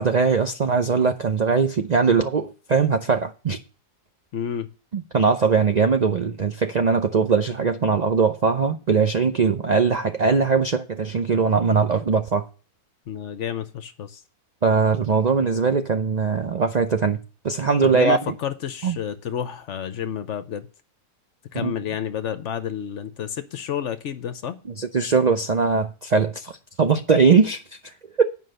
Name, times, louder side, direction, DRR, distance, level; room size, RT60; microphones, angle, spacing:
voice 1, 0.0-3.6 4.9-12.5 14.6-17.2 17.4-18.2 18.8-19.0 21.6-21.7 24.8-26.5 26.8-27.6 28.2-28.3, right 5 dB, 80° right, 0.3 m, -20 dB
voice 2, 4.3-4.7 13.1-14.2 17.8-20.7 21.5-24.6, left 9 dB, 60° left, 0.9 m, -30 dB
9.5 x 5.4 x 6.5 m
omnidirectional pair, 1.7 m